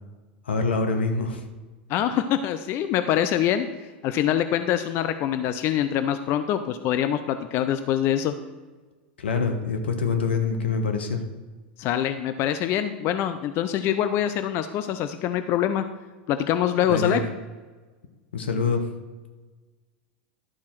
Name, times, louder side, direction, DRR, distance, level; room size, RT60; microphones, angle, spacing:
voice 1, 0.5-1.4 9.2-11.2 16.9-17.2 18.3-18.9, left 4 dB, 85° left, 6 dB, 1.1 m, -25 dB
voice 2, 1.9-8.3 11.8-15.8 16.3-17.2, left 10 dB, 45° left, 10 dB, 0.5 m, -24 dB
11.0 x 4.3 x 5.9 m, 1.3 s
hypercardioid pair, 95°, 6 cm